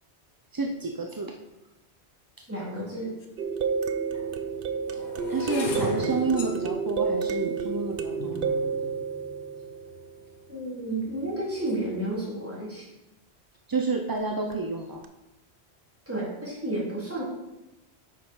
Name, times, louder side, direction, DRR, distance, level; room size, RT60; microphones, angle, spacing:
voice 1, 0.5-1.3 5.3-8.5 13.7-15.0, right 3 dB, 30° right, 2 dB, 0.4 m, -29 dB
voice 2, 2.5-3.1 10.5-12.9 16.1-17.2, right 1 dB, 10° right, -8 dB, 3.5 m, -31 dB
sound 1, 3.2-3.3 4.1-10.2 10.9-11.3 11.5-11.9, left 2 dB, 80° left, 1.3 m, -38 dB
sound 2, 3.4-10.3 14.5-14.6 15.0-15.1, right 5 dB, 60° right, 0.8 m, -30 dB
9.4 x 5.5 x 4.6 m, 0.97 s
omnidirectional pair, 1.1 m